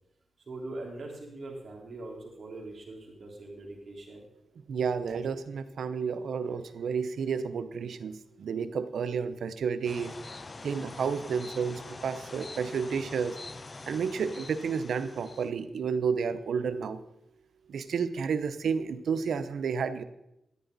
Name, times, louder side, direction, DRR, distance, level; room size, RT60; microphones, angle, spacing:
voice 1, 0.5-4.3, right 2 dB, 55° right, -2 dB, 3.8 m, -42 dB
voice 2, 4.7-10.1 10.6-13.4 13.9-17.0 17.7-20.0, right 6 dB, 85° right, 12 dB, 0.7 m, -31 dB
sound 1, 9.9-15.5, left 3 dB, 40° left, 0.6 m, -44 dB
13.5 x 10.5 x 4.0 m, 0.87 s
cardioid pair, 65°, 0 cm